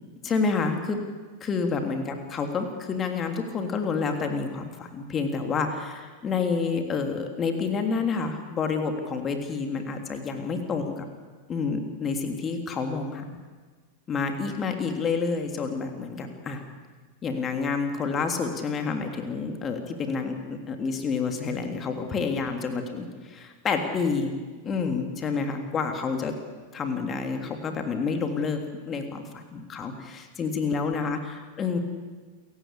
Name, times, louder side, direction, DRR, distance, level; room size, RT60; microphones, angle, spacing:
voice 1, 0.2-1.0 1.4-11.1 11.5-13.2 14.1-16.6 17.2-24.3 24.6-26.3 26.7-31.8, left 5 dB, 25° left, 5 dB, 3.3 m, -29 dB
28.5 x 16.0 x 8.4 m, 1.4 s
figure-of-eight pair, 90°, 0 cm